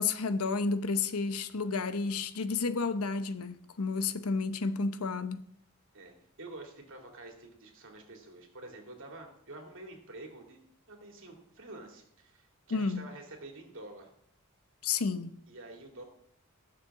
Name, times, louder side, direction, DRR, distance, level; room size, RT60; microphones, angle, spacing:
voice 1, 0.0-5.4 12.7-13.0 14.8-15.4, left 4 dB, 90° left, 0.8 m, -31 dB
voice 2, 5.9-10.6 10.9-14.1 15.5-16.0, right 2 dB, 65° right, 2.7 m, -48 dB
18.5 x 7.0 x 3.7 m
head